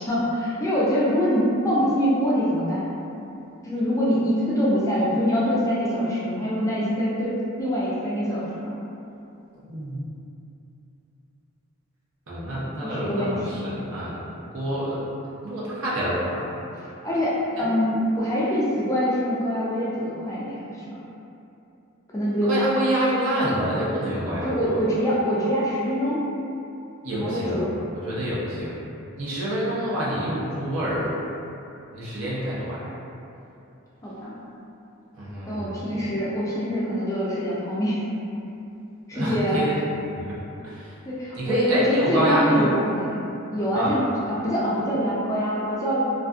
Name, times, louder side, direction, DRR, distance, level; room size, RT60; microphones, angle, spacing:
voice 1, 0.0-2.9 3.6-8.7 12.8-13.4 17.0-20.9 22.1-22.5 24.4-26.2 27.2-27.7 34.0-34.4 35.5-38.0 39.1-39.7 41.0-43.3 43.5-46.0, equal, 15° left, -7 dB, 0.3 m, -24 dB
voice 2, 9.6-10.0 12.3-15.0 15.4-16.5 17.5-17.6 22.5-24.8 27.0-27.7 28.0-28.8 29.2-31.1 31.9-32.9 35.2-36.0 39.1-39.7 40.1-40.3 40.6-41.0 41.3-42.7 43.7-43.9, equal, 65° right, -8 dB, 0.7 m, -27 dB
2.4 x 2.4 x 2.4 m, 2.7 s
head